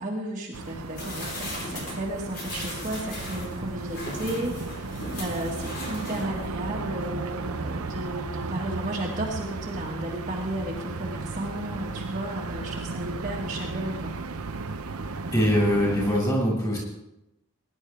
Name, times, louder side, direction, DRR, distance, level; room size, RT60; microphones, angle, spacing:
voice 1, 0.0-14.2, right 1 dB, 35° right, -3 dB, 1.9 m, -33 dB
sound 1, 0.5-16.2, right 3 dB, 85° right, 0.8 m, -35 dB
sound 2, 1.0-6.6 7.0-7.1, left 1 dB, 45° left, 4.2 m, -38 dB
voice 2, 15.3-16.8, equal, 15° left, -4 dB, 6.6 m, -22 dB
20.5 x 11.5 x 3.6 m, 0.89 s
head